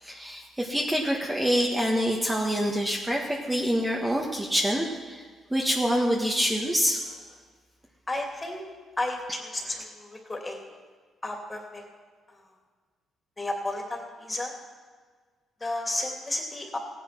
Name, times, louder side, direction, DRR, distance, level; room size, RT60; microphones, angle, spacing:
voice 1, 0.0-5.2 5.5-7.0, equal, 10° right, -1 dB, 1.5 m, -26 dB
voice 2, 8.1-8.6 9.0-10.6 11.2-11.8 13.4-14.5 15.6-16.8, left 2 dB, 20° left, 1 dB, 2.8 m, -32 dB
15.5 x 10.0 x 6.0 m, 1.5 s
cardioid pair, 90°, 0 cm